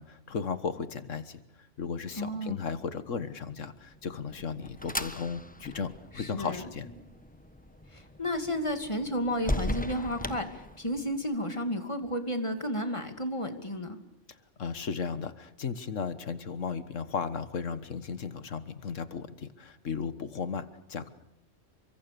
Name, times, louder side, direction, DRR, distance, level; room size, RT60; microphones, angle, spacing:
voice 1, 0.0-1.4 1.8-6.9 14.6-21.1, left 5 dB, 90° left, 12 dB, 1.8 m, -35 dB
voice 2, 2.1-2.6 6.1-6.6 7.9-14.0, equal, 25° left, 7 dB, 2.5 m, -32 dB
sound 1, 3.9-11.2, left 1 dB, 5° left, 1.2 m, -38 dB
29.5 x 25.0 x 6.9 m, 0.78 s
omnidirectional pair, 1.3 m